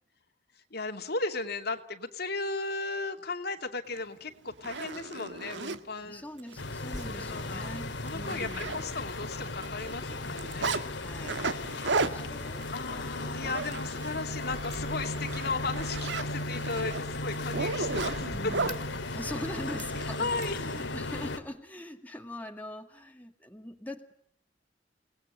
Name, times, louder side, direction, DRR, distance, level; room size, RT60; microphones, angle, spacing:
voice 1, 0.6-6.2 7.0-7.7 8.0-10.9 12.7-18.7 20.2-20.6, left 3 dB, 60° left, 5 dB, 2.6 m, -36 dB
Zipper (clothing), 4.0-4.1 4.5-5.8 6.4-6.5 6.9-7.0 7.4-7.5 7.8-9.2 9.4-10.8 11.2-14.2 14.5-14.8 15.2-18.8 19.8-20.5, right 3 dB, 75° right, 1.7 m, -34 dB
voice 2, 6.0-8.8 11.0-11.4 11.7-13.4 18.2-24.1, left 1 dB, 10° left, 4 dB, 2.1 m, -43 dB
sound 1, 6.6-21.4, left 2 dB, 85° left, 2.6 m, -36 dB
29.5 x 19.5 x 9.7 m, 0.69 s
head